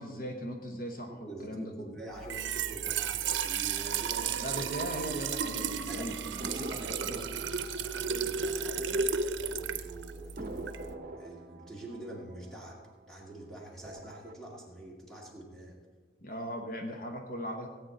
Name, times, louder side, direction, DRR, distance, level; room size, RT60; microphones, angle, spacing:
voice 1, 0.0-1.9 4.2-6.2 6.6-7.2 16.2-17.7, equal, 50° left, 2 dB, 1.1 m, -39 dB
voice 2, 1.1-4.4 5.9-7.2 7.8-9.0 9.3-12.8 13.1-15.8, right 1 dB, 5° left, -4 dB, 2.2 m, -45 dB
Trickle dribble / Fill (with liquid), 2.2-10.9, right 6 dB, 85° right, 0.6 m, -33 dB
sound 1, 6.4-9.5 9.8-9.9 10.4-13.3 13.7-14.3, right 1 dB, 50° right, 0.9 m, -44 dB
18.0 x 8.9 x 3.9 m, 1.5 s
head